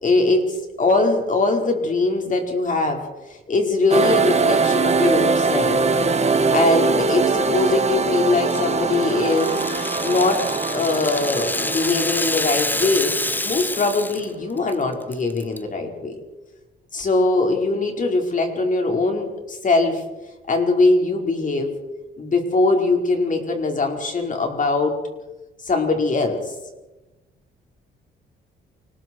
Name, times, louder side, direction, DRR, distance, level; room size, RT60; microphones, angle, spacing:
voice 1, 0.0-5.8 6.2-9.6 10.0-13.1 13.4-16.2 16.9-20.0 20.5-21.7 22.2-24.9 25.6-26.5, left 3 dB, 40° left, 2 dB, 5.0 m, -21 dB
sound 1, 3.9-14.2, right 4 dB, 35° right, 1.7 m, -22 dB
Rattle (instrument), 8.5-14.3 14.6-14.7 15.1-15.6, left 2 dB, 10° left, 0.8 m, -27 dB
29.0 x 20.5 x 4.7 m, 1.1 s
cardioid pair, 90°, 20 cm